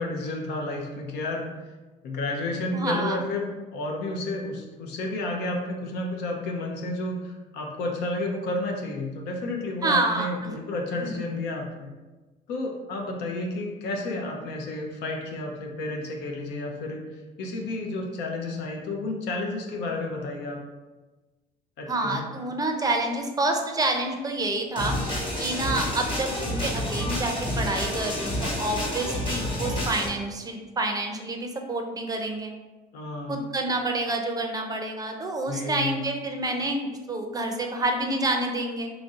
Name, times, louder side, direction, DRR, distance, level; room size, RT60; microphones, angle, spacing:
voice 1, 0.0-1.4 2.0-11.9 12.5-20.6 21.8-22.2 32.9-33.4 35.5-36.0, left 2 dB, 85° left, 1 dB, 0.7 m, -31 dB
voice 2, 2.7-3.2 9.8-10.5 11.0-11.2 21.9-24.9 25.4-32.5 33.3-38.9, right 2 dB, 20° right, 3 dB, 0.5 m, -28 dB
sound 1, 24.8-30.1, left 1 dB, 30° left, 1.2 m, -29 dB
3.1 x 2.6 x 3.6 m, 1.2 s
cardioid pair, 110°, 17 cm